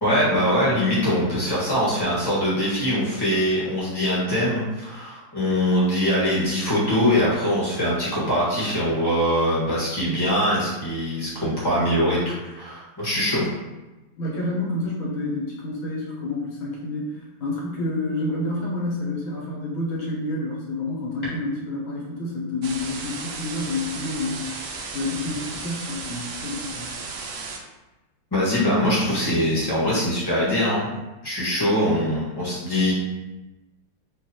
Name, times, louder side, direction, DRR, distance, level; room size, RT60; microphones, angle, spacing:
voice 1, 0.0-13.5 28.3-31.0 31.2-32.9, equal, 15° left, -8 dB, 0.8 m, -22 dB
voice 2, 14.2-17.1 17.4-24.5 24.9-26.9, left 2 dB, 80° left, -4 dB, 1.7 m, -29 dB
sound 1, 22.6-27.6, right 4 dB, 75° right, 1.2 m, -34 dB
4.7 x 2.6 x 2.7 m, 1.1 s
omnidirectional pair, 2.2 m